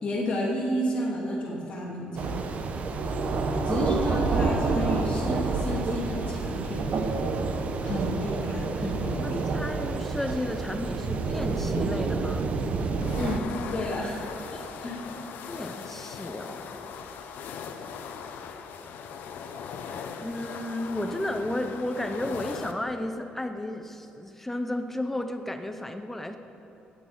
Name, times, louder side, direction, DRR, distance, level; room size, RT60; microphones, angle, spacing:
voice 1, 0.0-2.4 3.6-6.9 7.8-9.4 13.2-15.0, equal, 30° left, -5 dB, 2.4 m, -31 dB
sound 1, 2.2-13.4, right 4 dB, 45° right, 0.9 m, -28 dB
voice 2, 9.2-12.6 15.5-16.8 20.2-26.4, left 1 dB, 10° left, 7 dB, 0.6 m, -33 dB
sound 2, 13.0-22.7, left 6 dB, 75° left, 0.9 m, -39 dB
9.7 x 9.4 x 8.6 m, 3.0 s
cardioid pair, 140°, 3 cm